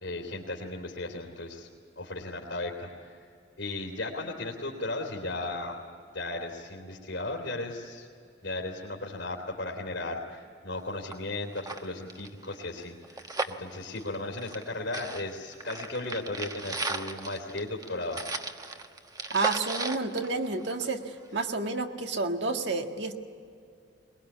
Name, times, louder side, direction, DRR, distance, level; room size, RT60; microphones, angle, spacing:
voice 1, 0.0-1.7 2.0-3.2 3.6-5.8 6.1-8.1 8.4-18.2, left 2 dB, 85° left, -2 dB, 3.1 m, -36 dB
sound 1, 10.8-10.9 11.1-11.2 11.5-14.7 14.9-21.0 21.4-21.5, right 3 dB, 20° right, 1.1 m, -36 dB
voice 2, 19.3-21.0 21.3-23.1, right 3 dB, 70° right, 5 dB, 1.8 m, -30 dB
22.0 x 21.5 x 8.4 m, 2.4 s
head